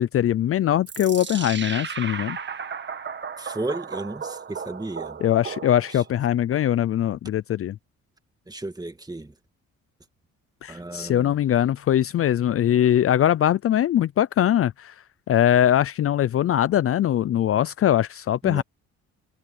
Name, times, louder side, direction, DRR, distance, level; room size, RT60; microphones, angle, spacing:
voice 1, 0.0-2.4 5.2-7.8 10.6-14.9 15.3-18.6, left 11 dB, 50° left, 0.5 m, -21 dB
sound 1, 0.9-6.2, right 6 dB, 35° right, 1.6 m, -35 dB
voice 2, 3.4-5.2 5.9-6.0 8.5-9.3 10.7-11.4 18.4-18.6, right 2 dB, 15° right, 1.9 m, -34 dB
cardioid pair, 90°, 30 cm